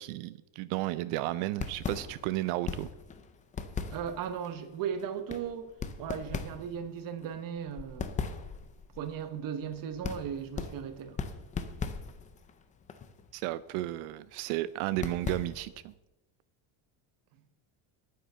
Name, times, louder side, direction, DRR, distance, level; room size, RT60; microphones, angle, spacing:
voice 1, 0.0-2.9 13.3-15.9, right 16 dB, 85° right, 0.6 m, -33 dB
sound 1, 1.5-15.9, left 5 dB, 15° left, 0.4 m, -40 dB
voice 2, 3.9-5.7 6.0-8.2 9.0-11.2, right 8 dB, 40° right, 1.1 m, -37 dB
9.4 x 9.1 x 6.7 m
cardioid pair, 180°, 49 cm